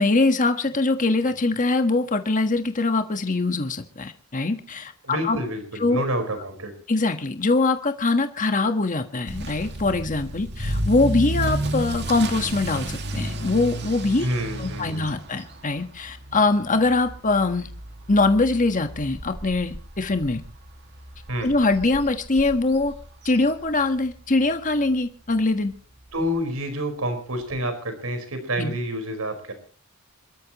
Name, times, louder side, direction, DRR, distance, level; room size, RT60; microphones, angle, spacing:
voice 1, 0.0-5.4 5.8-6.0 6.9-14.3 14.6-17.7 18.1-20.4 21.4-22.9 23.2-25.7 28.6-28.7, left 3 dB, 40° left, 7 dB, 1.4 m, -23 dB
voice 2, 5.0-6.7 14.2-15.1 21.3-21.5 26.1-29.5, equal, 90° right, 7 dB, 4.8 m, -28 dB
Motor vehicle (road) / Accelerating revving vroom, 9.3-24.1 24.4-24.8 25.3-25.4 25.7-25.8 26.1-26.2 27.5-27.6, right 1 dB, 55° right, 2.2 m, -32 dB
28.0 x 13.5 x 3.1 m, 0.40 s
head